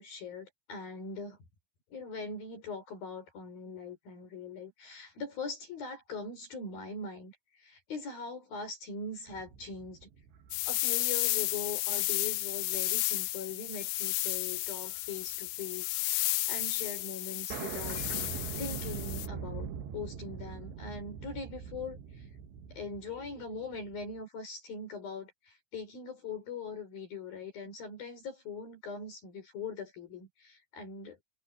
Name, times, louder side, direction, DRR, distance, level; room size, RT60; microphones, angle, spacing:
voice 1, 0.0-1.4 1.9-10.1 10.7-18.3 18.6-22.4 22.7-31.2, left 4 dB, 55° left, 6.7 m, -41 dB
sound 1, 9.3-11.9 12.4-12.5 14.0-14.3 14.6-16.0 16.3-16.4 16.6-16.7 17.0-17.1 17.5-24.2, right 7 dB, 75° right, 3.9 m, -42 dB
sound 2, 10.5-19.3, left 19 dB, 80° left, 2.3 m, -33 dB
omnidirectional pair, 5.0 m